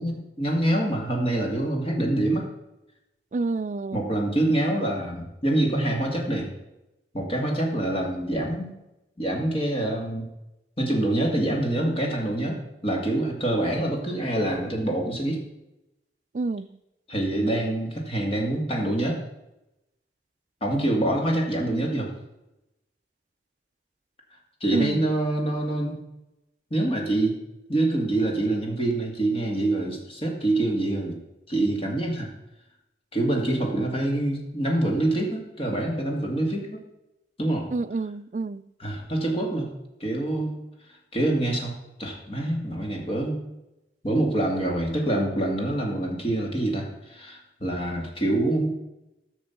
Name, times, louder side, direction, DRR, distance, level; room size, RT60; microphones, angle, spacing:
voice 1, 0.0-2.5 3.9-6.5 7.1-8.8 9.2-10.3 10.8-15.4 17.1-19.2 20.6-22.1 24.6-26.0 26.7-27.4 27.7-31.2 31.5-32.3 33.1-36.8 37.4-37.7 38.8-39.7 40.0-40.6 41.1-43.4 44.0-48.7, right 1 dB, 30° left, 2.3 m, -26 dB
voice 2, 3.3-4.1 16.3-16.7 24.7-25.1 37.7-38.6, right 3 dB, 40° right, 0.4 m, -28 dB
14.0 x 6.1 x 5.8 m
head